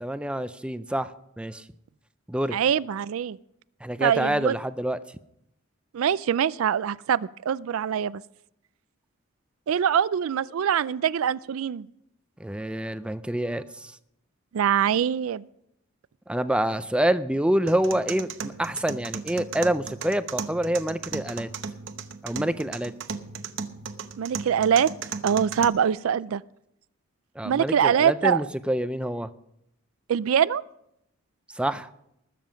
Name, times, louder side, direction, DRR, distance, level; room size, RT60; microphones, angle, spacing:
voice 1, 0.0-1.1 1.4-1.6 2.3-2.6 3.8-5.0 12.4-13.9 16.3-21.5 22.2-22.9 27.4-29.3 31.6-31.9, right 1 dB, 5° right, 12 dB, 0.4 m, -27 dB
voice 2, 2.5-3.4 4.0-4.6 5.9-8.2 9.7-11.9 14.5-15.5 24.2-24.9 25.2-26.4 27.4-28.4 30.1-30.6, right 8 dB, 75° right, 18 dB, 0.4 m, -23 dB
sound 1, 17.7-25.7, right 5 dB, 60° right, 0.9 m, -36 dB
20.0 x 7.6 x 5.1 m, 0.79 s
head